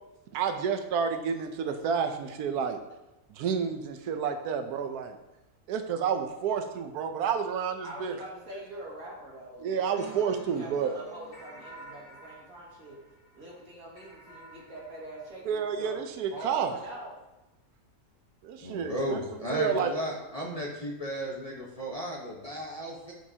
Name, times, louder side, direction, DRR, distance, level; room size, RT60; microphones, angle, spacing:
voice 1, 0.3-2.8 3.3-5.2 5.7-8.1 9.6-10.9 15.5-16.7 18.4-19.2 19.5-19.9, right 7 dB, 85° right, 7 dB, 1.2 m, -30 dB
voice 2, 7.8-13.0 13.3-17.1, right 1 dB, 65° right, -4 dB, 2.3 m, -44 dB
sound 1, 9.9-16.1, right 2 dB, 60° left, 3.1 m, -51 dB
voice 3, 18.6-23.1, equal, 30° left, -3 dB, 1.0 m, -34 dB
7.6 x 7.4 x 2.8 m, 0.99 s
omnidirectional pair, 1.6 m